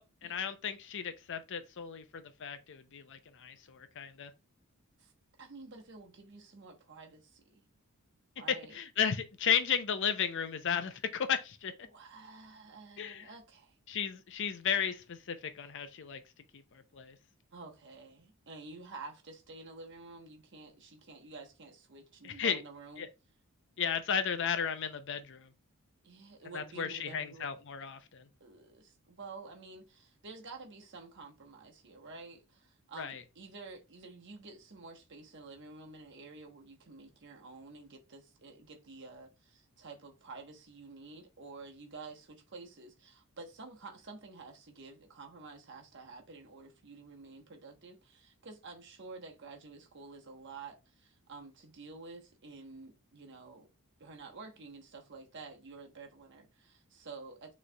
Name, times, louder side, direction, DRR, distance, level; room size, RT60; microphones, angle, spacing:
voice 1, 0.0-4.3 8.7-11.7 13.0-13.3 13.9-16.2 16.7-17.1 22.2-22.6 23.0-23.1 23.8-25.5 26.5-28.3 33.0-33.2, left 7 dB, 55° left, 0.5 m, -34 dB
voice 2, 5.4-7.6 8.4-8.8 11.8-13.8 17.5-23.1 26.0-27.5 28.4-53.7 54.0-57.5, right 3 dB, 55° right, 1.1 m, -50 dB
6.4 x 3.1 x 2.2 m
head